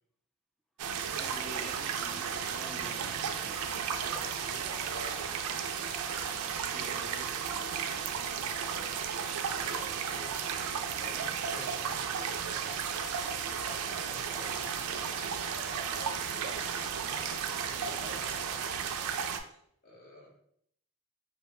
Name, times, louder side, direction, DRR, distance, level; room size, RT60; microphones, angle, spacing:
sound 1, 0.8-19.4, right 7 dB, 85° right, 0.3 m, -34 dB
voice 1, 1.1-3.0 3.4-3.6 6.3-8.2, equal, ahead, 0 dB, 0.3 m, -50 dB
voice 2, 4.0-5.3 9.6-10.5 11.0-12.7 13.5-14.9 15.5-18.6 19.8-20.3, left 1 dB, 50° left, -3 dB, 0.9 m, -50 dB
sound 2, 12.0-18.9, left 1 dB, 85° left, 0.9 m, -52 dB
2.6 x 2.1 x 2.9 m, 0.69 s
head